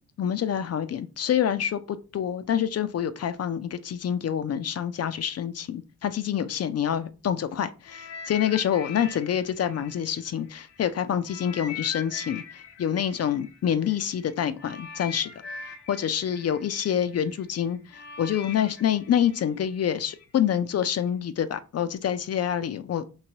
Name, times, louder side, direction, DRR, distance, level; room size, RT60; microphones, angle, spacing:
voice 1, 0.2-15.3 15.9-23.0, left 9 dB, 40° left, 0.4 m, -27 dB
sound 1, 7.9-10.8 11.3-20.2 21.0-21.1, left 6 dB, 80° left, 0.7 m, -42 dB
3.1 x 2.8 x 2.7 m
supercardioid pair, 55°, 41 cm